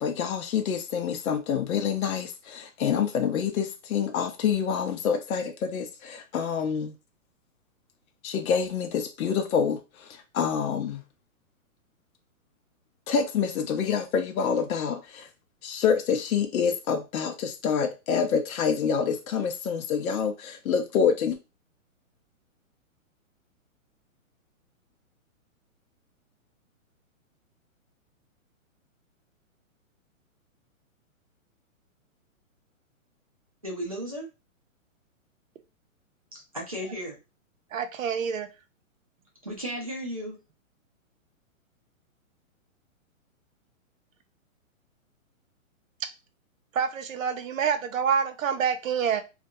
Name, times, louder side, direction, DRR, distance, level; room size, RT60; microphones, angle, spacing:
voice 1, 0.0-6.9 8.2-11.0 13.1-15.3 15.6-21.4, left 7 dB, 85° left, 0.6 m, -27 dB
voice 2, 33.6-34.3 36.5-37.2 39.4-40.4, equal, 30° right, 0.4 m, -34 dB
voice 3, 37.7-38.5 46.7-49.2, right 7 dB, 70° right, 0.6 m, -27 dB
2.4 x 2.2 x 2.6 m
hypercardioid pair, 175°, 41 cm